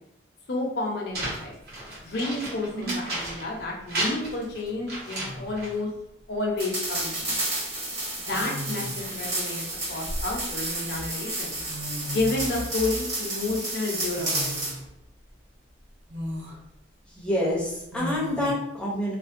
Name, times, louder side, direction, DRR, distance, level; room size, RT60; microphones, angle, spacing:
voice 1, 0.5-1.5 2.0-5.9 6.3-7.4 8.2-9.6 9.9-11.6 12.1-14.8, left 2 dB, 60° left, -1 dB, 0.6 m, -30 dB
sound 1, 1.1-3.6 3.9-5.8, right 1 dB, 55° right, 1.0 m, -33 dB
sound 2, 2.7-3.2 4.7-4.8 5.2-5.7 7.0-7.2 8.3-9.1 9.7-10.7 11.4-11.5 11.7-12.6 14.2-14.8 15.3-15.4 16.1-16.6 17.9-18.5, equal, 80° right, 0.6 m, -36 dB
sound 3, 6.6-14.8, right 1 dB, 40° right, 1.3 m, -31 dB
voice 2, 17.1-19.2, left 1 dB, 5° left, -6 dB, 0.6 m, -27 dB
2.5 x 2.1 x 2.5 m, 0.81 s
head